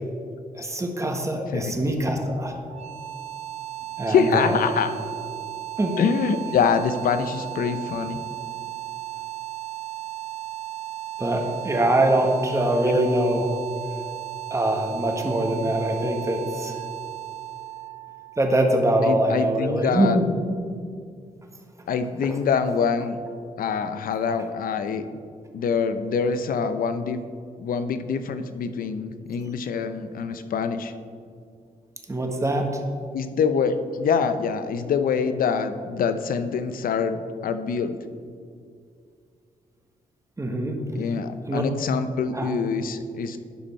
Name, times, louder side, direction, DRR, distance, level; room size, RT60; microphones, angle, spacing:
voice 1, 0.5-2.5 4.0-4.6 5.8-6.0 11.2-13.6 14.5-16.8 18.4-20.1 22.2-22.4 32.1-32.8 40.4-40.8 41.5-41.6 42.3-42.5, right 1 dB, 20° right, 3 dB, 1.3 m, -23 dB
sound 1, 2.6-19.6, right 16 dB, 45° right, 1.1 m, -36 dB
voice 2, 4.1-4.9 6.0-8.2 19.0-20.2 21.9-23.2 23.6-25.2 25.5-27.2 27.6-30.9 33.1-38.0 40.9-43.4, left 6 dB, 75° left, 10 dB, 0.6 m, -25 dB
11.5 x 5.2 x 4.3 m, 2.3 s
cardioid pair, 70°, 15 cm